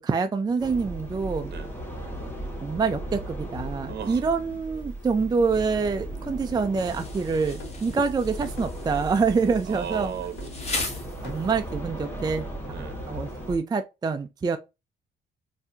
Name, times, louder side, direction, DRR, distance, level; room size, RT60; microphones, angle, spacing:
voice 1, 0.0-1.5 2.6-10.1 11.2-12.5 13.1-14.6, right 5 dB, 20° right, 0.4 m, -26 dB
sound 1, 0.6-13.6, right 1 dB, 10° left, 1.7 m, -37 dB
voice 2, 3.9-4.2 9.7-11.4 12.7-13.0, right 8 dB, 55° right, 1.0 m, -37 dB
sound 2, 4.3-6.3 6.6-7.3 7.6-8.3 8.6-9.2 9.5-11.0 11.2-11.5, left 5 dB, 65° left, 1.4 m, -49 dB
Insect, 6.8-11.7, left 3 dB, 35° left, 1.3 m, -38 dB
3.9 x 2.7 x 2.7 m
cardioid pair, 90°, 20 cm